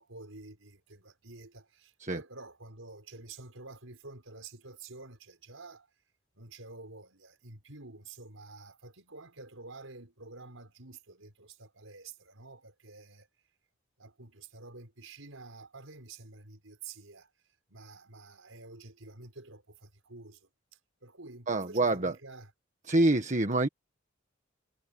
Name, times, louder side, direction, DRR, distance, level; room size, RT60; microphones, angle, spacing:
voice 1, 0.0-5.9 6.3-13.3 14.0-17.3 17.7-22.5, right 3 dB, 90° right, 5.2 m, -49 dB
voice 2, 21.5-22.1 22.9-23.7, right 2 dB, 40° right, 1.5 m, -26 dB
head